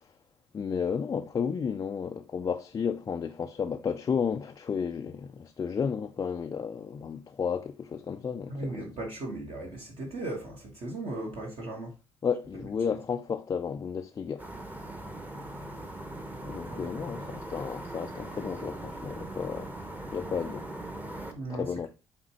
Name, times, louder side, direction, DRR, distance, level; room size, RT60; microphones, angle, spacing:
voice 1, 0.5-8.8 12.2-14.5 16.5-19.7 20.1-20.7 21.5-21.9, left 6 dB, 25° left, 0.4 m, -32 dB
voice 2, 8.5-11.9 12.9-13.0 16.4-17.0 21.3-21.9, right 2 dB, 45° right, 1.6 m, -37 dB
sound 1, 14.4-21.3, right 1 dB, 10° right, 1.1 m, -40 dB
8.5 x 3.6 x 3.0 m
figure-of-eight pair, 50°, 14 cm